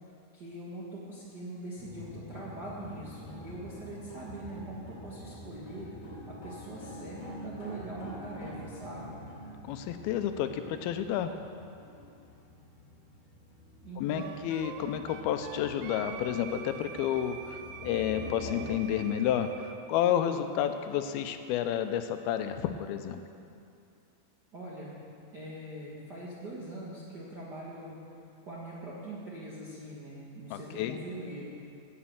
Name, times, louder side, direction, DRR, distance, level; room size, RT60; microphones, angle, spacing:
voice 1, 0.3-5.9 6.3-9.2 13.8-14.4 24.5-25.0 25.3-28.0 28.4-31.5, right 1 dB, 55° right, -7 dB, 1.1 m, -42 dB
sound 1, 1.8-18.8, left 1 dB, 65° left, 5.2 m, -46 dB
voice 2, 9.7-11.3 14.0-17.6 17.8-23.2 30.5-31.0, left 10 dB, 85° left, 8 dB, 2.5 m, -30 dB
Wind instrument woodwind instrument, 14.2-19.8, right 7 dB, 80° right, 2.3 m, -46 dB
11.0 x 8.7 x 7.4 m, 2.5 s
omnidirectional pair, 4.4 m